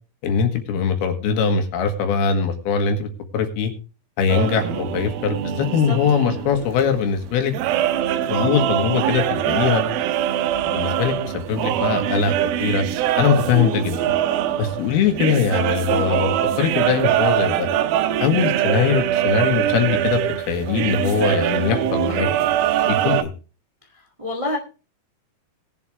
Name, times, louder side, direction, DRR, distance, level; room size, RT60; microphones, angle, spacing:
voice 1, 0.2-3.7 4.2-7.5 8.3-9.8 10.7-12.8 13.2-14.1 14.6-16.3 16.6-17.7 18.2-22.3 22.9-23.3, left 7 dB, 85° left, 6 dB, 3.5 m, -21 dB
sound 1, 4.3-23.2, right 11 dB, 85° right, 2.6 m, -23 dB
voice 2, 5.6-6.0 6.3-6.4 23.9-24.6, left 2 dB, 30° right, 1 dB, 0.6 m, -29 dB
20.0 x 7.3 x 3.2 m, 0.33 s
omnidirectional pair, 4.4 m